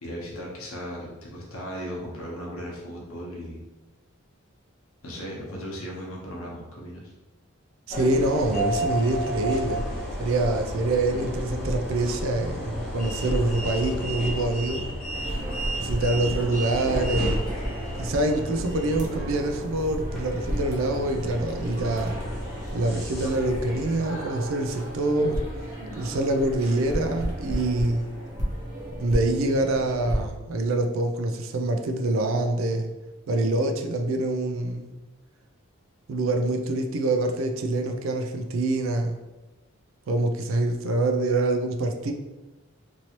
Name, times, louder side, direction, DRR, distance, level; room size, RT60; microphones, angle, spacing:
voice 1, 0.0-3.6 5.0-7.0, equal, 85° left, -3 dB, 0.9 m, -37 dB
sound 1, 7.9-23.9, right 1 dB, ahead, 0.9 m, -32 dB
voice 2, 7.9-9.8 10.2-14.9 15.8-17.4 18.0-22.2 22.7-25.4 26.0-28.1 29.0-32.9 33.3-34.9 36.1-39.2 40.1-42.1, right 2 dB, 70° right, 4 dB, 0.4 m, -25 dB
sound 2, 15.1-30.2, equal, 35° right, 0.8 m, -34 dB
3.0 x 2.7 x 2.9 m, 1.1 s
head